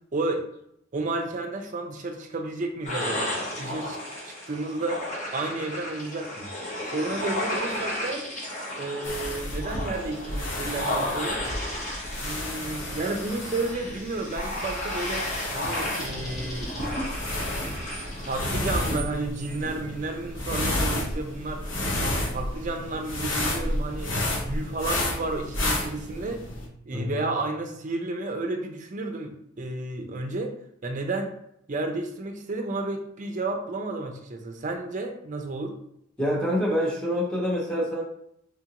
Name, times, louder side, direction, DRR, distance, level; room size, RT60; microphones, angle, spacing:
voice 1, 0.1-0.4 0.9-4.0 4.2-5.0 5.3-6.5 6.9-8.2 8.8-11.5 12.2-15.3 15.5-16.7 18.2-21.6 22.0-24.1 24.4-26.4 26.9-30.5 30.8-31.3 31.7-35.7, right 2 dB, 40° right, 4 dB, 0.5 m, -32 dB
sound 1, 2.8-18.5, left 1 dB, 35° left, 0.8 m, -33 dB
sound 2, 9.0-26.7, left 1 dB, 65° left, 0.9 m, -31 dB
voice 2, 26.9-27.2 36.2-38.0, equal, 5° left, -4 dB, 0.8 m, -26 dB
3.7 x 2.5 x 2.8 m, 0.73 s
head